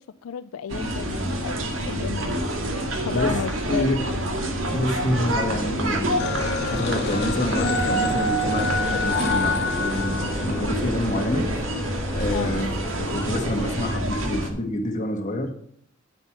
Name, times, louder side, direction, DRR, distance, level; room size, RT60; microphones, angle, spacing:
voice 1, 0.2-2.4 2.8-4.3 12.3-12.6, left 6 dB, 80° left, 12 dB, 0.4 m, -33 dB
sound 1, 0.7-14.5, right 1 dB, 70° right, 1.9 m, -27 dB
voice 2, 3.7-4.0 4.7-6.2 6.7-11.5 11.9-15.5, left 1 dB, 40° left, 3 dB, 1.7 m, -27 dB
sound 2, 6.2-11.1, left 2 dB, 55° left, 0.9 m, -27 dB
sound 3, 8.4-13.9, left 1 dB, 10° left, 0.5 m, -40 dB
9.0 x 8.0 x 6.0 m, 0.66 s
head